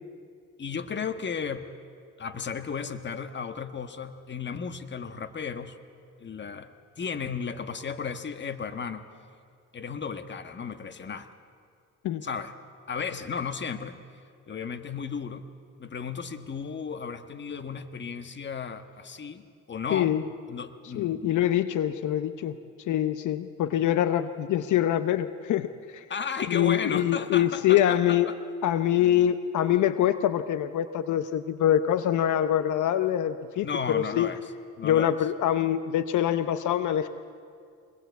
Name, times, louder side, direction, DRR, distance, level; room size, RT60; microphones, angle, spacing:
voice 1, 0.6-1.7 2.2-5.8 6.2-6.7 7.0-9.1 9.7-11.3 12.2-12.5 12.9-14.0 14.5-15.4 15.8-20.2 20.5-21.4 26.1-28.4 33.6-34.4 34.8-35.1, left 6 dB, 35° left, 9 dB, 1.5 m, -34 dB
voice 2, 19.9-20.2 20.9-22.6 22.9-26.0 26.5-28.3 28.6-34.3 34.8-37.1, left 11 dB, 80° left, 11 dB, 0.9 m, -24 dB
25.0 x 21.0 x 8.3 m, 2.3 s
cardioid pair, 90°, 30 cm